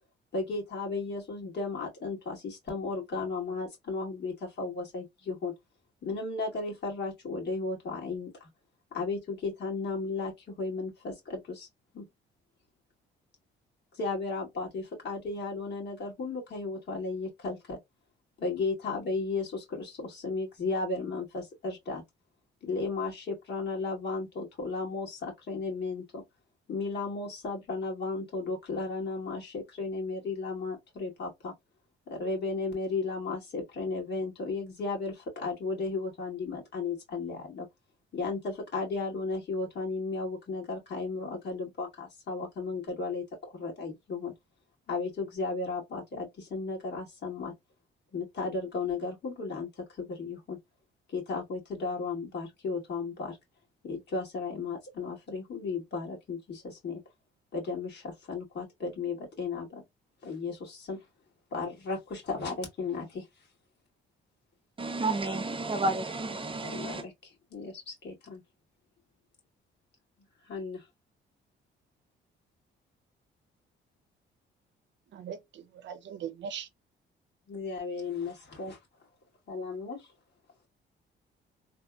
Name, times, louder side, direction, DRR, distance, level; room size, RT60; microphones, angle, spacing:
voice 1, 0.3-5.5 6.0-8.5 8.9-11.7 11.9-12.1 13.9-17.8 18.4-22.0 22.6-26.2 26.7-31.5 32.1-37.7 38.1-44.3 44.9-47.5 48.1-50.6 51.1-53.4 53.8-57.0 57.5-59.8 60.2-61.1 61.5-63.5 66.6-68.4 70.4-70.9 77.5-78.8 79.5-80.1, left 3 dB, 60° left, 1.9 m, -35 dB
voice 2, 64.8-67.0, right 2 dB, 25° right, 0.6 m, -31 dB
voice 3, 75.1-76.7, right 8 dB, 65° right, 0.6 m, -40 dB
3.3 x 2.1 x 2.4 m
cardioid pair, 90°, 20 cm